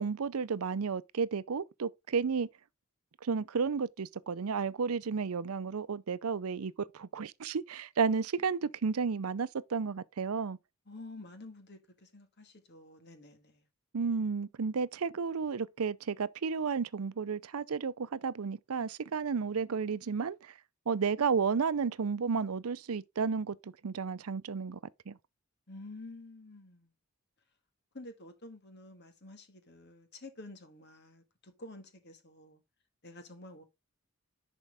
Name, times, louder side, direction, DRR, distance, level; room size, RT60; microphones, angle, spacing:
voice 1, 0.0-2.5 3.2-10.6 13.9-20.5 20.9-24.8 25.1-25.2, right 5 dB, 90° right, 0.6 m, -32 dB
voice 2, 10.9-13.7 25.7-26.9 27.9-32.6 33.0-33.6, left 2 dB, 50° left, 1.8 m, -50 dB
10.5 x 4.5 x 3.5 m
head